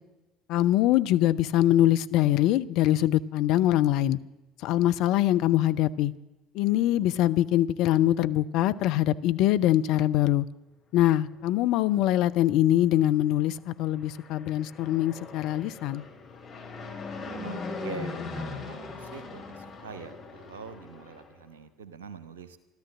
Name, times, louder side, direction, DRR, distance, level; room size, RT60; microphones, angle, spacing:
voice 1, 0.5-4.2 4.6-6.1 6.5-10.5 10.9-16.0, left 13 dB, 55° left, 12 dB, 0.5 m, -23 dB
Fixed-wing aircraft airplane, 13.9-21.3, left 3 dB, 40° left, 3.2 m, -39 dB
voice 2, 17.4-22.6, right 6 dB, 75° right, 12 dB, 1.1 m, -44 dB
14.0 x 12.5 x 7.3 m, 1.1 s
figure-of-eight pair, 60°, 0 cm